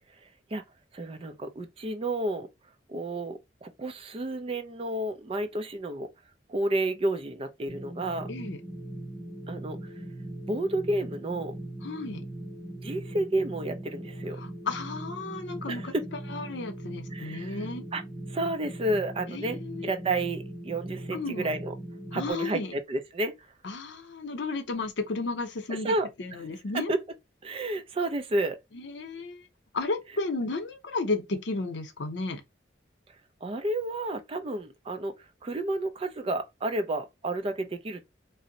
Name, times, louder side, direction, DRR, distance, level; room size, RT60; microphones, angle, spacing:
voice 1, 0.9-2.5 2.9-6.1 6.5-8.3 9.5-9.8 10.5-11.5 12.8-14.4 15.7-16.0 17.1-17.6 17.9-18.0 18.3-21.7 22.1-23.3 25.7-26.1 26.7-27.0 27.4-28.6 33.4-35.1 35.4-38.1, right 2 dB, 30° right, 0.4 m, -31 dB
sound 1, 7.7-22.3, right 1 dB, ahead, 0.8 m, -40 dB
voice 2, 8.3-8.6 11.8-12.3 14.4-15.9 16.3-17.9 19.3-19.9 21.1-21.5 22.1-22.7 23.6-25.9 26.2-26.9 28.7-29.5 29.7-32.4, left 3 dB, 70° left, 0.7 m, -33 dB
2.6 x 2.0 x 3.8 m
head